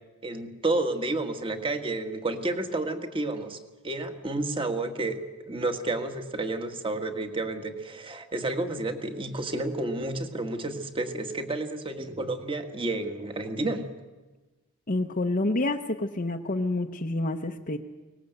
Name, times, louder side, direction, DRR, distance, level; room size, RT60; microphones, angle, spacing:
voice 1, 0.2-5.2 5.5-13.8, right 2 dB, 25° right, 6 dB, 1.6 m, -30 dB
voice 2, 14.9-17.8, left 2 dB, 40° left, 1 dB, 0.9 m, -28 dB
24.5 x 19.5 x 8.0 m, 1.2 s
head